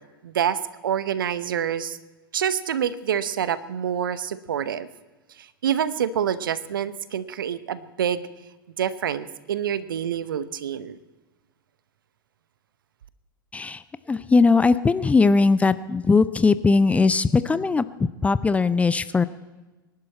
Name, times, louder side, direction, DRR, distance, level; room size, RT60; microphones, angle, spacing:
voice 1, 0.2-2.0 2.3-4.9 5.4-8.3 8.8-11.0, right 9 dB, 65° right, 15 dB, 0.9 m, -27 dB
voice 2, 14.1-19.2, left 4 dB, 10° left, 15 dB, 0.5 m, -19 dB
25.0 x 11.5 x 4.3 m, 1.2 s
figure-of-eight pair, 90°, 12 cm